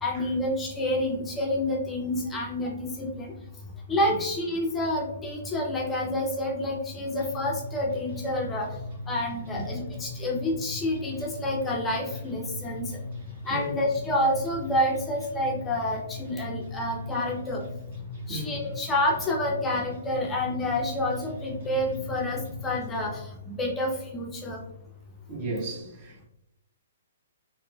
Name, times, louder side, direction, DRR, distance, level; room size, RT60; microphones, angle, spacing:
voice 1, 0.0-3.3 3.9-8.7 9.1-13.0 13.5-17.6 18.3-24.6, left 1 dB, 15° left, 0.5 m, -28 dB
sound 1, 7.2-23.2, left 2 dB, 60° right, 1.4 m, -39 dB
voice 2, 13.5-13.8 18.3-18.6 25.3-26.3, right 2 dB, 35° right, 1.0 m, -34 dB
3.0 x 2.9 x 2.2 m
figure-of-eight pair, 120°, 0 cm